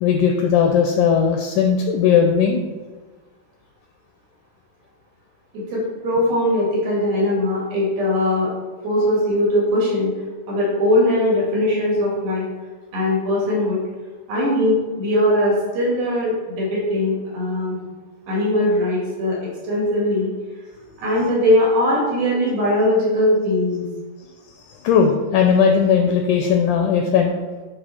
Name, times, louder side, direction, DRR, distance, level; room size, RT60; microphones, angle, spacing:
voice 1, 0.0-2.6 24.8-27.3, left 7 dB, 80° left, 3 dB, 1.8 m, -17 dB
voice 2, 5.5-8.5 8.8-10.1 10.5-12.5 12.9-13.8 14.3-17.8 18.3-19.4 19.6-20.3 21.0-23.8, left 1 dB, 90° right, -6 dB, 4.1 m, -20 dB
9.4 x 3.4 x 4.2 m, 1.3 s
omnidirectional pair, 4.1 m